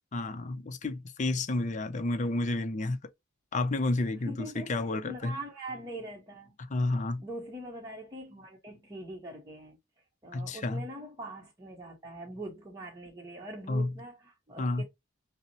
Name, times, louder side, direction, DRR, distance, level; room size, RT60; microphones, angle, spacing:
voice 1, 0.1-3.0 3.5-5.4 6.7-7.2 10.3-10.9 13.7-13.9 14.6-14.8, left 2 dB, 35° left, 0.5 m, -30 dB
voice 2, 4.3-6.6 7.2-9.8 10.2-14.8, right 1 dB, 20° right, 0.8 m, -43 dB
5.5 x 2.0 x 2.9 m
head